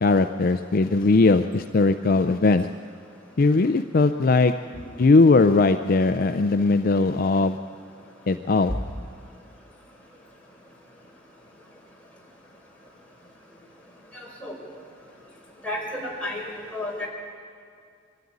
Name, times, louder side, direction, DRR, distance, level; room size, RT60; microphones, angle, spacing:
voice 1, 0.0-2.7 3.4-4.5 5.0-7.6 8.3-8.7, left 3 dB, 50° left, 10 dB, 0.5 m, -19 dB
voice 2, 14.1-14.5 15.6-16.4 16.7-17.1, left 1 dB, 5° left, -3 dB, 4.4 m, -32 dB
23.0 x 13.5 x 9.5 m, 2.3 s
head